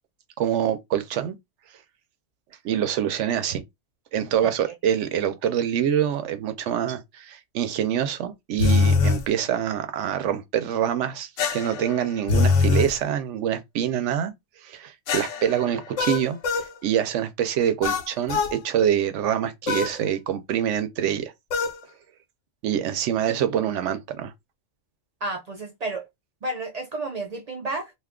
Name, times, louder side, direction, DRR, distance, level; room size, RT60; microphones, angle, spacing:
voice 1, 0.4-1.4 2.6-3.6 4.1-14.3 14.6-16.4 16.8-21.3 22.6-24.3, right 9 dB, 75° right, 0.9 m, -25 dB
sound 1, 8.6-9.2 11.4-12.9 15.1-16.7 17.8-18.6 19.7-20.0 21.5-21.8, left 4 dB, 90° left, 1.1 m, -23 dB
voice 2, 25.2-26.1 26.4-27.9, right 2 dB, 55° right, 0.4 m, -31 dB
2.5 x 2.3 x 3.5 m
omnidirectional pair, 1.2 m